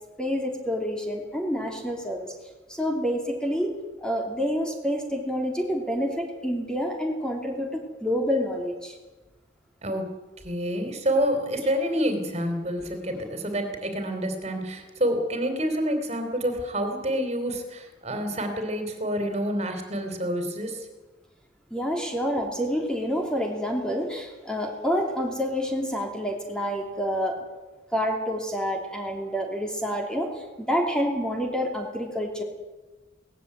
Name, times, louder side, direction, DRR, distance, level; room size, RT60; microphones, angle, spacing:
voice 1, 0.2-2.3 2.7-3.7 4.0-9.0 21.7-27.4 27.9-32.4, equal, 5° left, 1 dB, 3.0 m, -28 dB
voice 2, 10.4-20.9, equal, 35° right, 6 dB, 3.3 m, -28 dB
18.5 x 15.0 x 9.6 m, 1.2 s
head